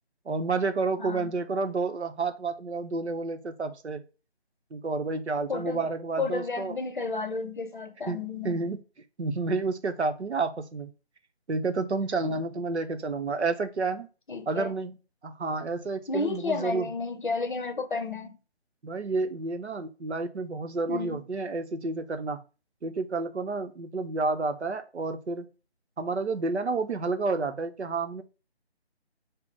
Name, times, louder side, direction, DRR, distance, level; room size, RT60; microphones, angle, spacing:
voice 1, 0.3-4.0 4.7-6.8 8.1-8.8 9.2-10.9 11.5-14.1 14.5-15.0 15.2-16.9 18.8-22.4 22.8-25.5 26.0-28.2, right 3 dB, 85° right, 0.7 m, -30 dB
voice 2, 1.0-1.3 5.5-5.8 6.2-8.5 12.2-12.3 14.3-14.7 16.1-18.4 20.9-21.2, left 3 dB, 50° left, 0.7 m, -32 dB
3.3 x 2.0 x 3.8 m
figure-of-eight pair, 160°, 33 cm